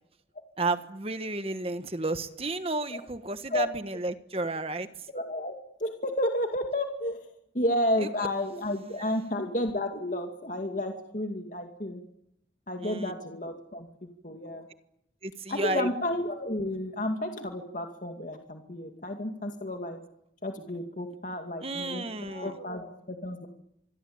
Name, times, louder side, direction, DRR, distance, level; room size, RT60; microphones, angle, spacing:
voice 1, 0.6-4.9 8.0-8.1 12.8-13.1 15.2-15.9 21.6-22.5, right 2 dB, 35° right, 10 dB, 1.5 m, -32 dB
voice 2, 5.1-12.0 12.7-14.7 15.5-20.0 20.4-23.5, left 1 dB, 45° left, 4 dB, 2.3 m, -32 dB
26.5 x 22.5 x 8.8 m, 0.78 s
head